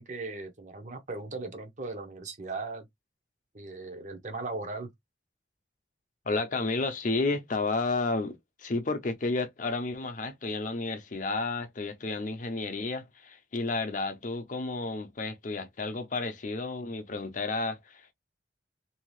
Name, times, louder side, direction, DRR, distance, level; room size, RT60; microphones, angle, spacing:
voice 1, 0.0-2.9 3.5-4.9, right 3 dB, 40° right, 0.7 m, -38 dB
voice 2, 6.3-8.3 8.6-18.1, left 3 dB, 45° left, 0.6 m, -31 dB
2.7 x 2.3 x 3.1 m
head